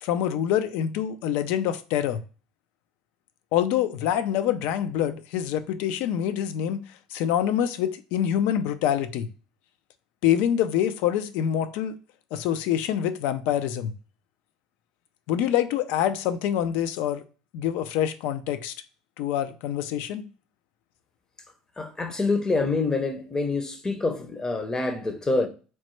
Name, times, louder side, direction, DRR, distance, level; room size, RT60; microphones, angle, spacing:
voice 1, 0.0-2.2 3.5-6.8 7.1-9.3 10.2-12.0 12.3-13.9 15.3-17.2 17.5-18.7 19.2-20.3, left 10 dB, 70° left, 0.3 m, -25 dB
voice 2, 21.8-25.5, left 3 dB, 20° left, 0.6 m, -26 dB
3.0 x 2.1 x 3.0 m
supercardioid pair, 80°, 3 cm